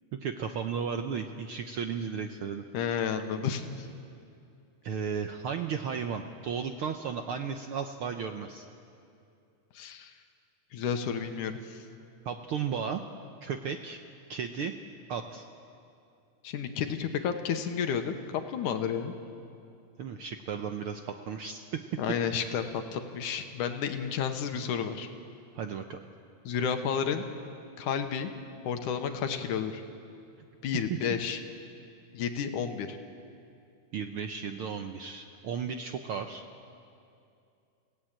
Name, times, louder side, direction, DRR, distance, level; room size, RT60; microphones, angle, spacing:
voice 1, 0.1-2.6 4.8-8.7 12.2-13.0 13.4-14.0 14.3-14.7 15.1-15.5 20.0-21.8 25.5-26.0 33.9-36.4, right 6 dB, 85° right, 6 dB, 1.2 m, -34 dB
voice 2, 2.7-3.9 9.7-10.1 10.7-11.9 16.4-19.1 22.0-25.1 26.5-27.2 27.8-28.3 28.6-29.8 30.6-31.4 32.1-33.0, left 7 dB, 80° left, 7 dB, 2.7 m, -31 dB
30.0 x 17.5 x 8.9 m, 2.5 s
omnidirectional pair, 3.6 m